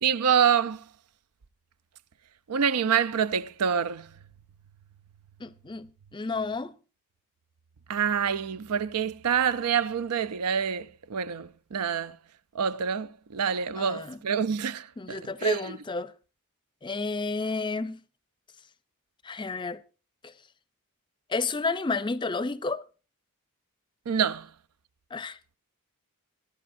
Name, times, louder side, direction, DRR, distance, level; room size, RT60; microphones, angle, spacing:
voice 1, 0.0-0.9 2.5-4.1 7.9-12.2 12.5-15.8 24.1-24.5, right 7 dB, 90° right, 0.5 m, -27 dB
voice 2, 5.4-6.8 13.8-14.2 15.0-16.1 16.8-18.0 19.2-19.8 20.2-20.3 21.3-22.8 25.1-25.4, left 3 dB, 20° left, 0.5 m, -31 dB
22.5 x 10.5 x 2.6 m
head